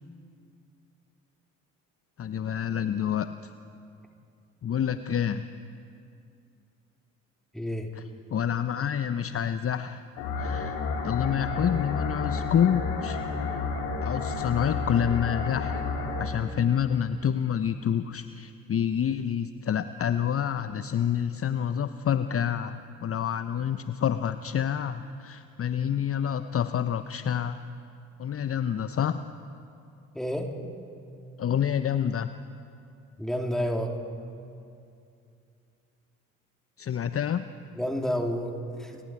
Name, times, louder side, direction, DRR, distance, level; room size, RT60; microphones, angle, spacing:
voice 1, 2.2-3.5 4.6-5.4 8.0-8.1 8.3-10.0 10.4-10.8 11.0-13.2 14.0-15.8 16.2-27.6 28.2-29.2 31.4-32.3 36.8-37.5, left 9 dB, 35° left, 12 dB, 0.9 m, -28 dB
voice 2, 7.5-7.9 30.2-30.5 33.2-34.0 37.8-39.0, equal, ahead, 2 dB, 3.5 m, -30 dB
sound 1, 10.2-16.2, left 4 dB, 70° left, 3.8 m, -31 dB
30.0 x 24.5 x 4.8 m, 2.6 s
figure-of-eight pair, 45°, 41 cm